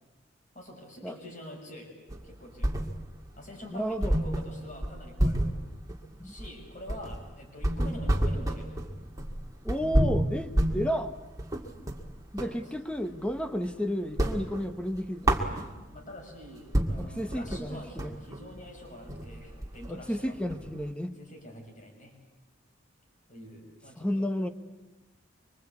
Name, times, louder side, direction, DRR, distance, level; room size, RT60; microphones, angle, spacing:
voice 1, 0.5-1.9 2.2-2.7 3.4-5.6 6.2-8.7 12.4-12.5 15.9-20.3 21.1-22.1 23.3-24.2, left 1 dB, 40° left, 2 dB, 6.2 m, -46 dB
sound 1, 2.1-3.3 3.6-3.7 4.0-12.6 13.0-13.7 14.0-16.0 16.4-16.5 16.7-20.9, right 1 dB, 20° right, 2.1 m, -29 dB
voice 2, 3.7-4.2 6.2-6.3 9.6-11.1 12.3-15.3 17.0-18.2 19.9-21.2 24.0-24.5, equal, 5° left, 9 dB, 1.1 m, -32 dB
25.0 x 24.0 x 8.4 m, 1.1 s
head